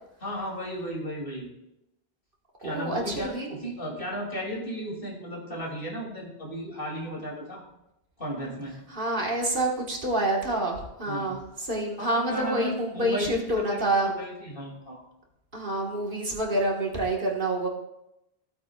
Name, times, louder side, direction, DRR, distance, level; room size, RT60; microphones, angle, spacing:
voice 1, 0.2-1.5 2.6-7.6 8.2-8.7 11.1-11.4 12.0-15.0, equal, 55° left, -2 dB, 2.9 m, -35 dB
voice 2, 2.6-3.5 8.9-14.1 15.5-17.7, right 1 dB, 55° right, -1 dB, 1.8 m, -27 dB
15.5 x 8.4 x 2.4 m, 0.86 s
omnidirectional pair, 1.1 m